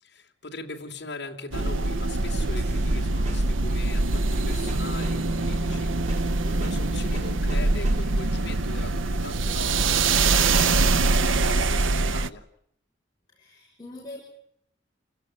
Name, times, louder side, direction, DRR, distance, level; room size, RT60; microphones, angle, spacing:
voice 1, 0.0-12.4, left 3 dB, 60° left, 1 dB, 2.8 m, -40 dB
sound 1, 1.5-12.3, right 3 dB, 90° right, 0.9 m, -24 dB
sound 2, 2.6-8.3, right 1 dB, 35° right, 3.0 m, -44 dB
Bass guitar, 4.8-11.0, right 1 dB, 65° right, 3.9 m, -36 dB
voice 2, 13.3-14.2, left 2 dB, 20° left, -3 dB, 5.9 m, -42 dB
29.0 x 16.5 x 9.2 m, 0.74 s
head